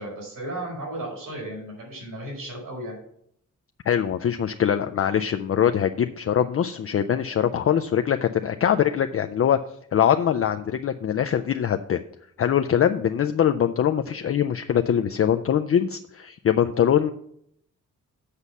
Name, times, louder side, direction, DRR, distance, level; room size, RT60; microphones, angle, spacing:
voice 1, 0.0-3.0, right 1 dB, 85° right, -2 dB, 4.8 m, -34 dB
voice 2, 3.9-9.6 9.9-12.0 12.4-17.1, left 9 dB, 45° left, 7 dB, 0.4 m, -22 dB
8.2 x 5.5 x 7.1 m, 0.69 s
wide cardioid pair, 165°, 32 cm